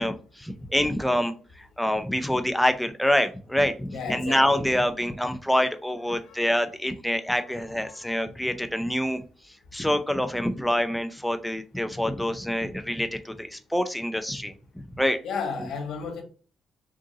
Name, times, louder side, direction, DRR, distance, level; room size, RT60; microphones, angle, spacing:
voice 1, 0.0-9.2 9.7-15.2, equal, 5° left, 0.5 m, -26 dB
voice 2, 3.9-4.7 6.2-6.4 7.9-8.1 15.2-16.2, left 5 dB, 75° left, 1.1 m, -33 dB
3.8 x 2.5 x 3.8 m
cardioid pair, 90°, 0 cm